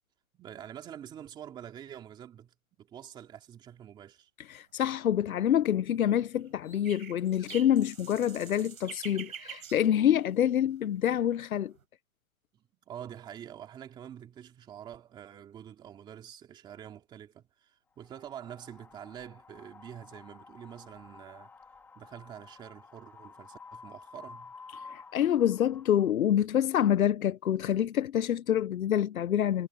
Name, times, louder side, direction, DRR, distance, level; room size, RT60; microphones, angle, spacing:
voice 1, 0.3-4.3 12.5-21.5 21.9-24.5, right 10 dB, 10° right, 2.6 m, -46 dB
voice 2, 4.5-11.7 24.9-29.7, left 10 dB, 85° left, 1.0 m, -27 dB
Usignolo - Nightingale, 4.9-5.4 6.1-10.8 11.1-11.8, right 7 dB, 80° right, 4.9 m, -47 dB
Wind, 18.0-26.1, left 4 dB, 5° left, 1.8 m, -51 dB
hypercardioid pair, 170°, 41 cm